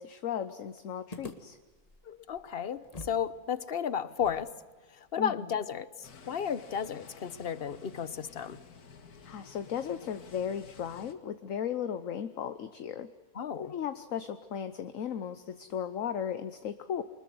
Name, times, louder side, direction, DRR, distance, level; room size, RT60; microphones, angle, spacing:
voice 1, 0.0-1.6 5.2-5.3 9.2-13.1 13.5-17.0, left 8 dB, 60° left, 11 dB, 1.3 m, -36 dB
sound 1, 1.1-3.3 3.5-3.6 4.2-7.3, left 3 dB, 25° left, 1.7 m, -50 dB
voice 2, 2.1-4.5 5.1-8.6 13.3-13.7, left 8 dB, 45° left, 15 dB, 1.1 m, -33 dB
sound 2, 6.0-11.1, left 5 dB, 85° left, 2.1 m, -53 dB
25.0 x 20.5 x 7.8 m, 1.3 s
omnidirectional pair, 1.6 m